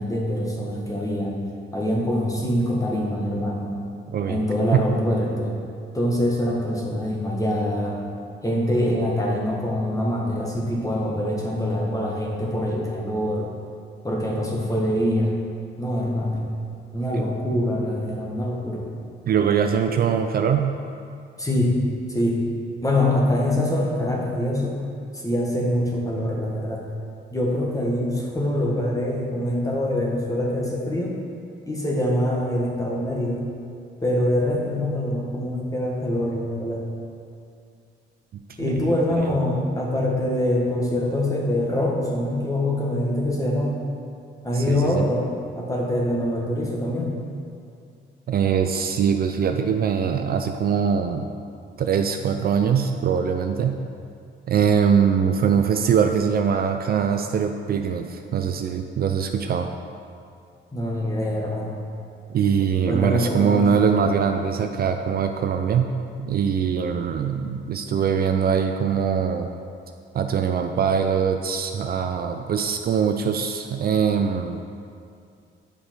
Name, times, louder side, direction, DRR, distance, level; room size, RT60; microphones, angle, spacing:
voice 1, 0.0-1.5 1.7-3.7 4.3-5.6 5.9-8.0 8.4-13.5 14.0-15.4 15.8-16.5 16.9-18.9 21.4-21.8 22.1-22.4 22.8-24.8 25.1-26.8 27.3-31.2 31.6-33.5 34.0-36.9 38.6-43.8 44.4-45.2 45.5-47.2 60.7-61.8 62.9-63.6, left 1 dB, 15° left, -3 dB, 1.4 m, -24 dB
voice 2, 4.1-4.4 4.7-4.9 17.1-17.3 19.3-20.8 38.3-39.2 44.5-45.1 48.3-51.3 51.8-53.8 54.5-59.7 62.3-65.9 66.2-69.5 70.1-74.6, right 7 dB, 50° right, 6 dB, 0.4 m, -22 dB
6.8 x 5.1 x 4.5 m, 2.4 s
cardioid pair, 90°, 20 cm